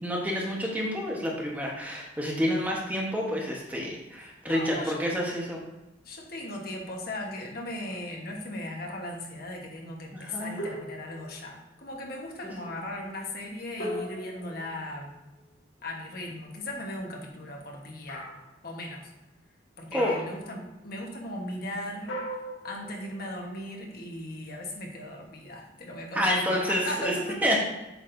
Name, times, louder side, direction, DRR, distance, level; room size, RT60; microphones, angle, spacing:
voice 1, 0.0-5.6 10.1-10.5 19.9-20.2 26.1-27.1 27.4-27.6, equal, 10° right, -2 dB, 1.1 m, -28 dB
voice 2, 4.2-5.0 6.0-15.1 15.8-18.3 18.6-19.1 19.8-22.2 22.6-27.6, left 1 dB, 55° left, 0 dB, 1.1 m, -37 dB
sound 1, 10.6-11.5 13.8-15.5 18.1-18.6 20.0-20.5 22.1-23.3, equal, 75° left, 1.8 m, -39 dB
8.0 x 6.2 x 2.6 m, 1.0 s
head